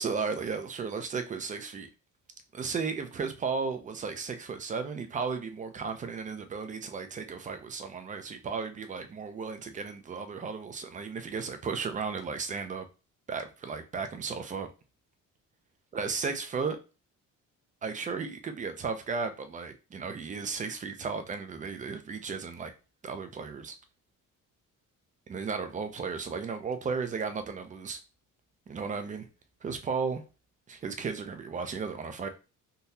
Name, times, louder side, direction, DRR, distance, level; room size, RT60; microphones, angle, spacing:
voice 1, 0.0-1.9 2.5-12.9 13.3-14.7 15.9-16.8 17.8-22.7 23.0-23.8 25.3-28.0 28.7-29.3 29.6-30.2 30.7-32.3, right 5 dB, 25° right, 0.4 m, -34 dB
3.8 x 2.7 x 2.7 m
cardioid pair, 160°, 32 cm